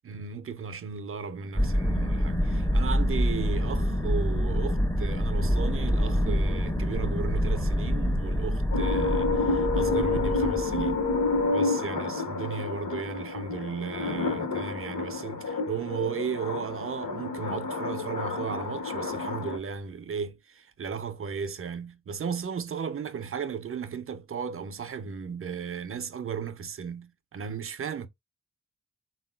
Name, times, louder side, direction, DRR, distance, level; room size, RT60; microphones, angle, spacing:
voice 1, 0.0-11.1 11.5-28.1, right 6 dB, 45° right, 0.5 m, -35 dB
sound 1, 1.6-11.5, equal, 10° left, 0.4 m, -26 dB
sound 2, 8.7-19.6, left 3 dB, 85° left, 0.9 m, -29 dB
3.6 x 2.3 x 2.3 m
wide cardioid pair, 85°, 32 cm